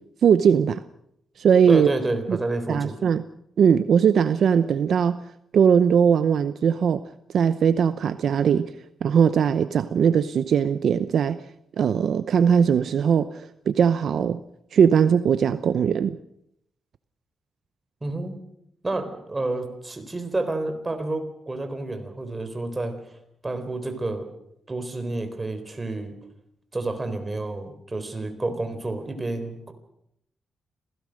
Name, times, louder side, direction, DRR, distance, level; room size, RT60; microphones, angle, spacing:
voice 1, 0.2-0.8 1.4-1.9 2.3-2.4 2.7-3.2 3.6-5.2 5.5-7.0 7.3-8.7 9.0-11.4 11.8-14.4 14.7-16.2, right 7 dB, 65° right, 0.7 m, -20 dB
voice 2, 1.7-3.0 18.0-18.4 18.8-22.9 23.4-24.3 24.7-26.1 26.7-29.7, right 2 dB, 20° right, 4.0 m, -29 dB
27.5 x 17.0 x 6.5 m
cardioid pair, 125°, 0 cm